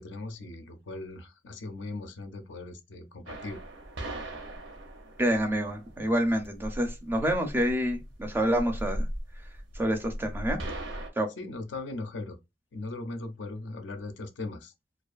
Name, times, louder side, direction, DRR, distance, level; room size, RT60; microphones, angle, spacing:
voice 1, 0.0-3.6 11.4-12.4 12.7-14.7, left 2 dB, 70° left, 0.4 m, -39 dB
sound 1, 3.3-11.1, right 1 dB, 75° right, 0.6 m, -38 dB
voice 2, 5.2-9.1 9.7-10.6 11.2-11.3, equal, 10° right, 0.4 m, -27 dB
2.4 x 2.3 x 2.3 m
head